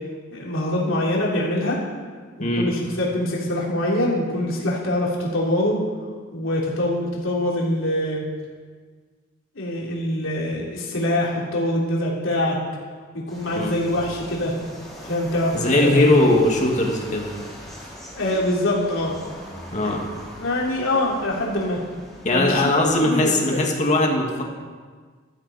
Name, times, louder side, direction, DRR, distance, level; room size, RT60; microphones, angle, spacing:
voice 1, 0.3-1.8 2.4-5.8 6.3-8.2 9.6-12.6 13.1-14.6 15.0-15.6 15.8-16.1 18.2-19.1 19.8-19.9 20.4-21.8 22.3-22.7 23.0-23.6, left 1 dB, 75° left, -4 dB, 3.6 m, -24 dB
sound 1, 13.3-23.0, equal, ahead, 3.7 m, -41 dB
voice 2, 15.5-17.3 19.7-20.0 22.2-24.4, left 1 dB, 40° left, 0 dB, 2.2 m, -19 dB
15.5 x 12.5 x 4.3 m, 1.5 s
head